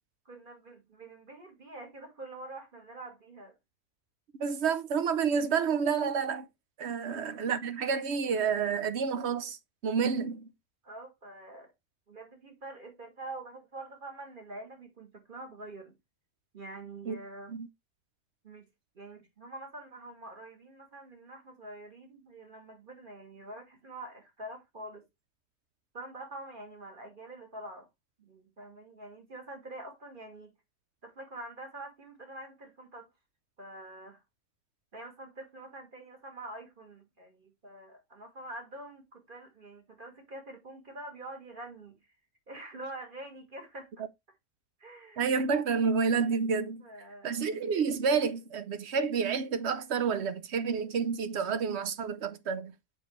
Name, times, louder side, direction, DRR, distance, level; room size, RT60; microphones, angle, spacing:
voice 1, 0.3-3.6 7.0-7.1 10.8-11.7 12.1-16.0 16.5-17.5 18.4-18.7 18.9-25.0 25.9-27.9 28.2-30.5 31.0-33.1 33.6-34.2 34.9-42.0 42.5-44.0 44.8-45.3 46.8-47.6, right 2 dB, 35° right, 2.2 m, -46 dB
voice 2, 4.4-6.5 6.8-9.6 9.8-10.5 17.1-17.2 17.5-17.7 45.2-46.9 47.2-52.7, right 6 dB, 60° right, 0.8 m, -29 dB
7.2 x 5.4 x 3.1 m
omnidirectional pair, 1.6 m